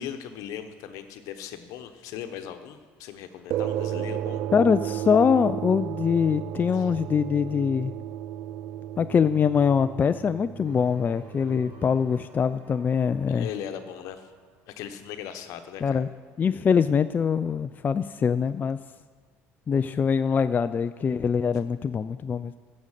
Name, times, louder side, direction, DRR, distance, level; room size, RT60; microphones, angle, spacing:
voice 1, 0.0-4.4 6.7-6.9 13.3-14.3 14.7-16.1, left 9 dB, 70° left, 8 dB, 1.0 m, -38 dB
sound 1, 3.5-12.2, right 11 dB, 60° right, 0.3 m, -34 dB
voice 2, 4.5-7.9 9.0-13.5 15.8-16.1 16.4-18.8 19.7-22.5, left 6 dB, 30° left, 11 dB, 0.4 m, -23 dB
sound 2, 10.6-15.7, right 4 dB, 85° right, 1.8 m, -55 dB
14.5 x 5.3 x 7.4 m, 1.5 s
supercardioid pair, 85°, 6 cm